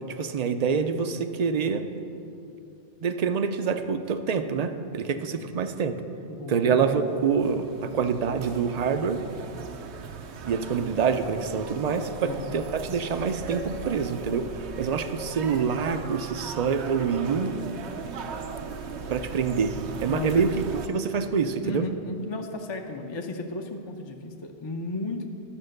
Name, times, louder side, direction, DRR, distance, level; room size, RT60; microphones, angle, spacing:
voice 1, 0.1-1.9 2.1-2.2 3.0-6.0 6.5-9.2 10.4-14.5 14.8-17.6 19.1-20.5 20.9-21.8, right 6 dB, 50° right, 9 dB, 0.5 m, -26 dB
voice 2, 6.3-6.8 12.2-12.5 20.1-20.4 21.6-25.3, left 2 dB, 30° left, 3 dB, 0.6 m, -34 dB
sound 1, 6.7-20.9, right 4 dB, 80° right, 1.0 m, -38 dB
11.5 x 6.7 x 6.5 m, 2.8 s
omnidirectional pair, 1.1 m